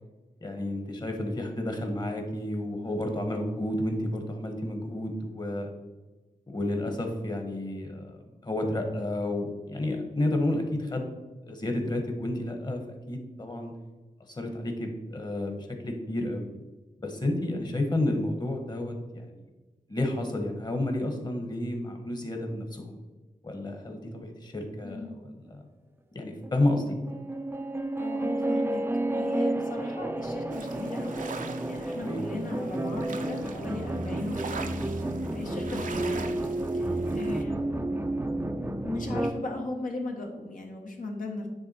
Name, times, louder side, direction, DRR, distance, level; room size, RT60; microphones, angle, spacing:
voice 1, 0.4-5.7 6.5-8.2 8.4-11.1 11.5-13.7 14.3-16.5 17.0-19.5 19.9-23.0 23.4-25.6 26.1-27.0 32.0-32.2, left 1 dB, 30° left, 4 dB, 1.4 m, -31 dB
voice 2, 24.8-25.2 27.9-28.8 29.1-31.1 31.6-34.6 34.9-35.0 35.3-36.3 36.7-38.5 38.8-41.5, left 2 dB, 70° left, 0 dB, 1.4 m, -37 dB
sound 1, 26.4-39.3, right 1 dB, 15° right, 0.5 m, -31 dB
sound 2, 30.5-37.4, right 4 dB, 65° right, 0.7 m, -43 dB
9.7 x 3.4 x 4.4 m, 1.2 s
cardioid pair, 75°, 14 cm